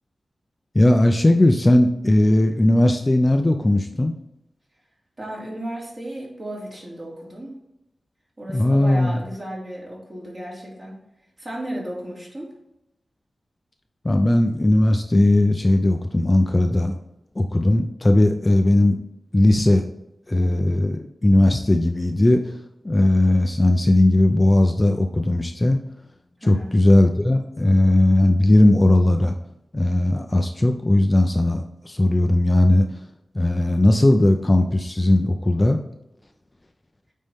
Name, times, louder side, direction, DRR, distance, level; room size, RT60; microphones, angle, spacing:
voice 1, 0.7-4.1 8.5-9.2 14.0-16.9 17.4-19.0 19.3-19.9 20.3-22.6 22.8-25.8 26.4-29.3 29.7-33.0 33.3-35.8, left 1 dB, 20° left, 5 dB, 0.5 m, -18 dB
voice 2, 5.2-7.5 8.4-10.9 11.4-12.5 26.4-26.7, right 1 dB, 35° right, -4 dB, 2.7 m, -34 dB
8.9 x 4.2 x 3.6 m, 0.86 s
wide cardioid pair, 120°, 0 cm